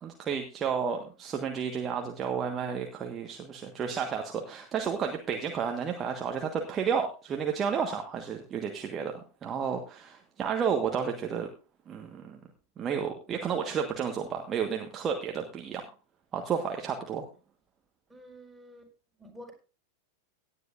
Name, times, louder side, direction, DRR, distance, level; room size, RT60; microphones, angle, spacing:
voice 1, 0.0-9.1 9.4-11.5 11.9-12.4 12.8-15.8 16.3-17.2, right 7 dB, 25° right, 3 dB, 1.4 m, -31 dB
voice 2, 18.1-19.5, equal, 5° right, -1 dB, 4.7 m, -50 dB
17.5 x 9.9 x 2.6 m, 0.34 s
figure-of-eight pair, 90°, 0 cm